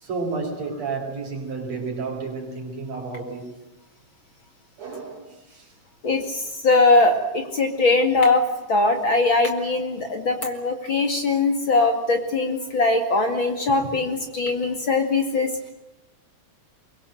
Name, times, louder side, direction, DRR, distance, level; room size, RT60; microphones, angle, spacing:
voice 1, 0.0-3.5 4.8-5.7 13.8-14.0, right 4 dB, 60° right, 3 dB, 6.0 m, -31 dB
voice 2, 6.0-15.7, left 3 dB, 40° left, 5 dB, 2.8 m, -21 dB
23.5 x 23.0 x 7.9 m, 1.0 s
omnidirectional pair, 3.5 m